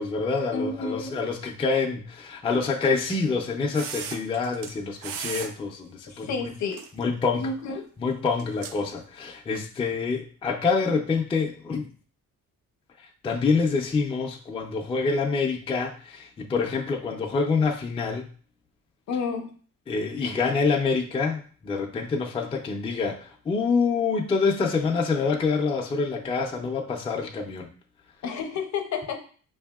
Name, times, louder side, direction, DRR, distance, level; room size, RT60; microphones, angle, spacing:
voice 1, 0.0-6.4 7.0-7.5 8.0-11.9 13.2-18.3 19.9-27.7, left 4 dB, 15° left, 1 dB, 0.3 m, -26 dB
voice 2, 0.5-1.2 6.1-6.8 7.4-7.9 19.1-19.5 28.2-29.2, left 5 dB, 55° left, 5 dB, 0.7 m, -30 dB
sound 1, 3.7-4.7 5.0-5.5 6.7-7.2 8.4-8.8 9.6-9.7, right 7 dB, 70° right, 0.5 m, -36 dB
4.9 x 2.7 x 2.3 m, 0.43 s
cardioid pair, 125°, 34 cm